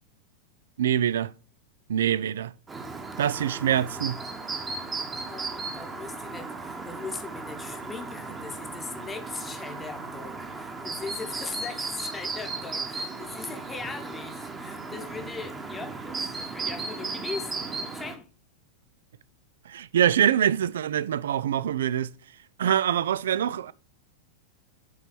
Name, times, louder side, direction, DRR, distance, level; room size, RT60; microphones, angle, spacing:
voice 1, 0.8-1.3 1.9-2.5 3.2-4.2 19.7-22.1 22.6-23.7, right 10 dB, 60° right, 0.3 m, -24 dB
Chirp tweet, 2.7-18.2, right 3 dB, 20° right, 1.1 m, -36 dB
voice 2, 5.3-18.3, left 4 dB, 15° left, 1.0 m, -39 dB
7.5 x 3.9 x 4.5 m
figure-of-eight pair, 90°, 0 cm